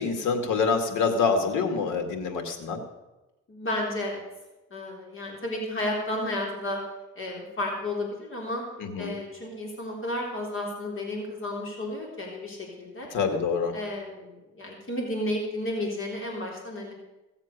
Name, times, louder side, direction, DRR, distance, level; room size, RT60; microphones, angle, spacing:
voice 1, 0.0-2.8 8.8-9.1 13.1-13.7, left 5 dB, 85° left, 6 dB, 2.2 m, -26 dB
voice 2, 3.5-4.2 4.7-6.8 7.2-8.6 9.0-13.1 13.7-16.9, left 1 dB, 45° left, -1 dB, 3.7 m, -32 dB
17.0 x 7.4 x 6.7 m, 1.0 s
cardioid pair, 90°, 30 cm